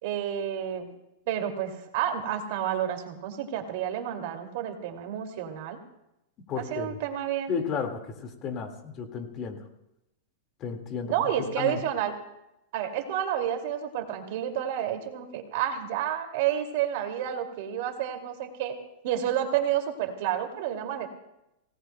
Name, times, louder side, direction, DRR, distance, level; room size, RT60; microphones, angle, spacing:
voice 1, 0.0-0.9 1.3-5.8 6.6-7.6 11.1-12.1 12.7-18.8 19.0-21.1, right 10 dB, 55° right, 4 dB, 2.5 m, -30 dB
voice 2, 6.5-7.0 7.5-9.6 10.6-11.1 11.6-11.8, left 6 dB, 30° left, 4 dB, 1.9 m, -33 dB
27.0 x 18.5 x 2.3 m, 0.86 s
supercardioid pair, 160°, 0 cm